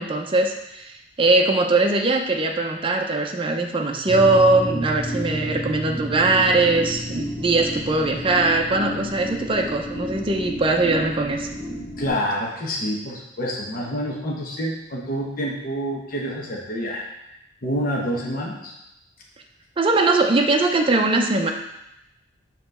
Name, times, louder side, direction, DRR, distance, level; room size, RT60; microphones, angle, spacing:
voice 1, 0.0-11.5 19.8-21.5, right 2 dB, 25° right, 3 dB, 0.5 m, -21 dB
sound 1, 4.1-12.1, equal, 70° left, 1.8 m, -31 dB
voice 2, 12.0-17.0 17.6-18.7, equal, 50° left, -3 dB, 1.0 m, -27 dB
5.7 x 3.0 x 5.3 m, 0.87 s
head